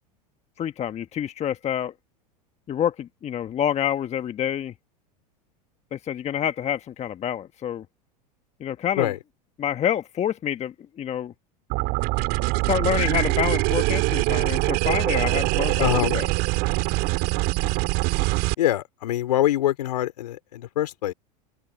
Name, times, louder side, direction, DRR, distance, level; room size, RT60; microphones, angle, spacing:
voice 1, 0.6-1.9 2.7-4.7 5.9-7.8 8.6-9.1 9.6-11.3 12.7-16.3, left 10 dB, 35° left, 1.4 m, -27 dB
sound 1, 11.7-18.5, right 23 dB, 55° right, 4.2 m, -23 dB
voice 2, 15.8-16.2 18.6-21.1, left 13 dB, 80° left, 3.6 m, -24 dB
hypercardioid pair, 90°, 20 cm